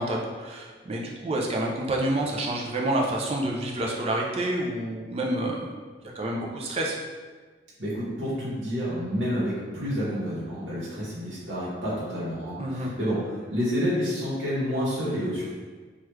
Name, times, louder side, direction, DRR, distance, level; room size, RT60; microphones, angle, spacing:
voice 1, 0.0-5.7 6.1-7.0 12.6-12.9, right 1 dB, 30° right, -1 dB, 0.4 m, -28 dB
voice 2, 7.8-15.5, equal, 85° right, -8 dB, 0.9 m, -29 dB
3.2 x 2.3 x 3.0 m, 1.4 s
head